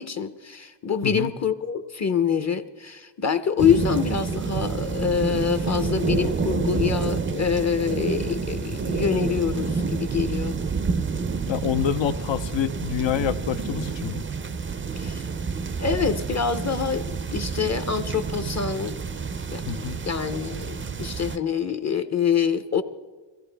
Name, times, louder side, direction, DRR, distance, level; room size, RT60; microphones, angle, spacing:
voice 1, 0.0-10.6 15.0-15.3 15.8-19.0 19.5-19.6 20.0-22.8, left 7 dB, 35° left, 10 dB, 0.7 m, -25 dB
sound 1, 3.6-21.4, right 4 dB, 30° right, 0.4 m, -28 dB
voice 2, 11.5-14.2 19.7-20.0, left 9 dB, 75° left, 12 dB, 0.7 m, -27 dB
21.5 x 16.0 x 3.3 m, 1.4 s
wide cardioid pair, 100°, 45 cm